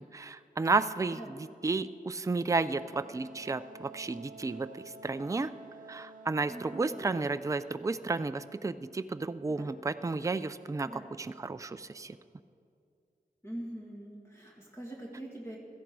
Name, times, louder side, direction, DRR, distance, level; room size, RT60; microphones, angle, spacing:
voice 1, 0.1-5.5 5.9-10.9 11.2-12.2, right 3 dB, 20° right, 12 dB, 0.4 m, -32 dB
Wind instrument woodwind instrument, 2.7-7.4, right 3 dB, 65° right, 0.7 m, -51 dB
voice 2, 6.5-7.2 9.5-9.7 10.9-11.1 13.4-15.6, right 1 dB, 15° left, -3 dB, 2.1 m, -43 dB
16.5 x 13.5 x 4.7 m, 2.4 s
wide cardioid pair, 105°, 15 cm